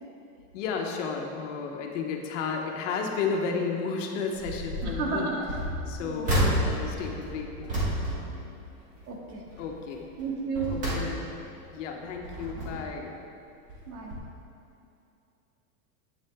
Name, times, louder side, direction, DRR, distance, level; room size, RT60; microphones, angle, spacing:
voice 1, 0.5-5.4 5.9-7.8 9.6-10.1 10.7-11.3 11.7-13.1, left 5 dB, 55° left, 2 dB, 1.2 m, -33 dB
sound 1, 4.4-5.0 5.4-9.1 9.5-9.8 10.3-11.6 12.1-13.0 13.7-13.9 14.1-14.2, right 1 dB, 20° right, 1.4 m, -31 dB
voice 2, 4.8-5.5 6.0-6.6 9.1-9.4 10.2-10.8 13.9-14.2, right 4 dB, 90° right, -2 dB, 2.2 m, -33 dB
9.8 x 8.4 x 3.6 m, 2.7 s
supercardioid pair, 175°, 43 cm